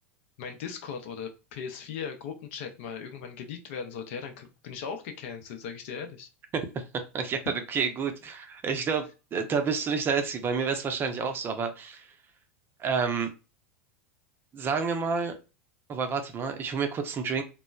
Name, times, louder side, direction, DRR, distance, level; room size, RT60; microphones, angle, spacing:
voice 1, 0.4-6.3, left 6 dB, 60° left, 5 dB, 0.6 m, -38 dB
voice 2, 6.5-12.1 12.8-13.3 14.5-15.3 15.9-17.4, right 5 dB, 30° right, 6 dB, 0.5 m, -29 dB
3.0 x 2.0 x 2.3 m, 0.30 s
hypercardioid pair, 90°, 8 cm